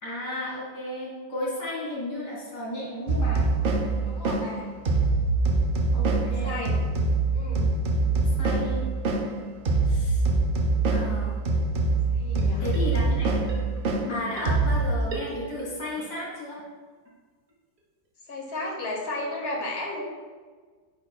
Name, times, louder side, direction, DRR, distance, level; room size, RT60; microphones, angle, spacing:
voice 1, 0.0-3.5 5.9-6.7 8.0-8.8 9.9-10.3 10.9-11.4 12.6-13.4 14.1-16.6, left 1 dB, 75° left, -5 dB, 2.8 m, -34 dB
sound 1, 3.1-14.9, right 3 dB, 85° right, 0.5 m, -24 dB
voice 2, 4.0-4.7 6.2-6.7 7.3-7.7 12.1-12.7 18.3-20.0, left 2 dB, 40° left, -2 dB, 1.6 m, -34 dB
sound 2, 12.4-13.2 13.5-16.0 16.3-16.4 16.6-16.7 17.0-17.1 17.5-17.6 17.8-17.9 18.3-18.4, right 2 dB, 55° right, 1.8 m, -41 dB
8.8 x 7.0 x 2.3 m, 1.5 s
omnidirectional pair, 1.8 m